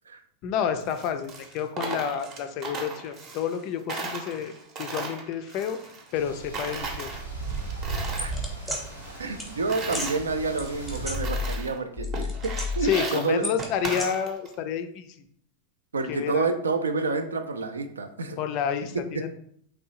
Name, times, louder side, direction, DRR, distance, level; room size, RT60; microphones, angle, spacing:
voice 1, 0.4-4.5 4.8-5.8 6.1-7.2 12.8-15.2 16.1-16.5 18.4-19.3, left 8 dB, 40° left, 9 dB, 0.3 m, -29 dB
Coin (dropping), 0.8-3.6 3.9-6.3 6.5-8.3 8.7-10.2 10.7-10.8 11.1-11.8 12.1-14.5, right 3 dB, 35° right, 0.7 m, -36 dB
sound 1, 6.1-11.1, right 3 dB, 90° right, 0.9 m, -36 dB
sound 2, 8.2-8.8 9.4-9.5 9.9-10.1 10.6-11.7 12.0-12.9 13.4-14.1, left 3 dB, ahead, 0.8 m, -31 dB
voice 2, 9.2-13.4 15.9-18.4 18.9-19.0, right 4 dB, 70° right, 7 dB, 0.3 m, -29 dB
3.1 x 2.7 x 2.9 m, 0.66 s
figure-of-eight pair, 90°, 0 cm